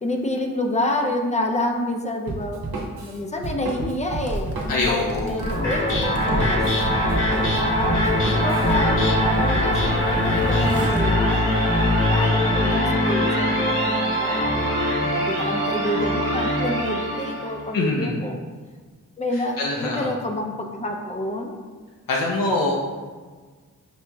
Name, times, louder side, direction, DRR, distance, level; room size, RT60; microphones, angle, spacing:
voice 1, 0.0-2.6 3.0-6.6 7.4-8.1 8.3-9.0 9.3-14.6 15.0-18.4 19.2-21.6, left 1 dB, 20° left, 2 dB, 0.5 m, -28 dB
Drum kit, 2.3-8.7, right 2 dB, 85° right, 0.8 m, -32 dB
Zipper (clothing), 4.1-12.1, right 1 dB, 45° right, 0.7 m, -32 dB
voice 2, 4.7-5.4 17.7-18.1 19.3-20.0 22.1-22.7, left 2 dB, 70° left, -3 dB, 0.6 m, -24 dB
sound 1, 5.4-17.6, left 1 dB, 35° left, 1.0 m, -22 dB
5.8 x 2.9 x 2.3 m, 1.4 s
wide cardioid pair, 90°, 34 cm